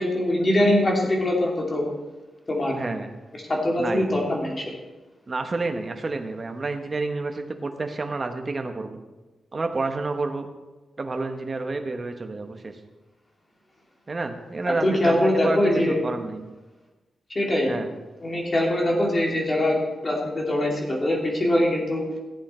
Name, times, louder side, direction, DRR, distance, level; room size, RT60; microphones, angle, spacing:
voice 1, 0.0-1.8 2.5-2.7 3.5-4.7 14.8-16.0 17.3-17.7 18.2-19.8 20.0-22.0, left 1 dB, 25° left, -1 dB, 2.6 m, -22 dB
voice 2, 2.7-3.1 3.8-4.1 5.3-9.0 9.5-10.5 11.0-12.7 14.1-16.4 17.7-17.9, right 3 dB, 30° right, 5 dB, 1.1 m, -29 dB
15.5 x 8.4 x 4.4 m, 1.2 s
wide cardioid pair, 155°, 0 cm